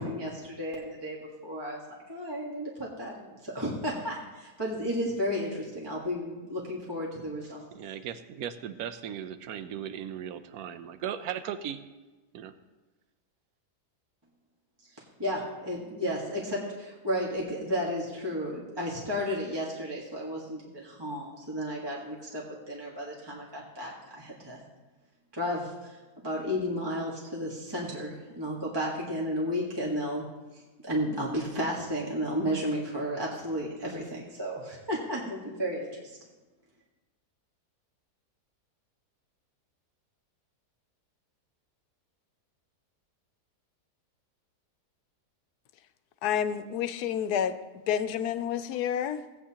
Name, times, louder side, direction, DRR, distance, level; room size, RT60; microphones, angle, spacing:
voice 1, 0.0-1.8 2.1-7.7 15.2-24.6 25.3-30.3 30.8-36.2, equal, 15° right, -4 dB, 1.5 m, -33 dB
voice 2, 7.7-11.8 12.3-12.5, right 9 dB, 70° right, 11 dB, 1.1 m, -37 dB
voice 3, 46.2-47.6 47.9-49.2, left 9 dB, 75° left, 11 dB, 1.1 m, -29 dB
17.0 x 8.5 x 2.9 m, 1.2 s
omnidirectional pair, 1.7 m